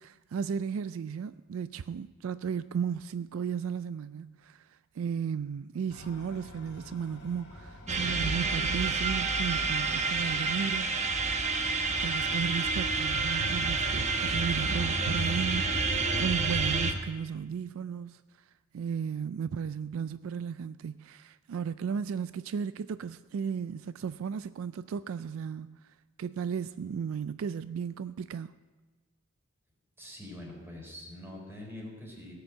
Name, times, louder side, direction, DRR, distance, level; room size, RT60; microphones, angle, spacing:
voice 1, 0.0-10.9 11.7-18.2 18.7-25.8 26.2-28.5, right 7 dB, 70° right, 0.3 m, -35 dB
sound 1, 5.9-12.4, left 2 dB, 55° left, 1.9 m, -49 dB
sound 2, 7.9-16.9, right 3 dB, 35° right, 1.0 m, -29 dB
voice 2, 30.0-32.3, left 1 dB, 10° right, 4.1 m, -44 dB
17.0 x 6.9 x 7.6 m
head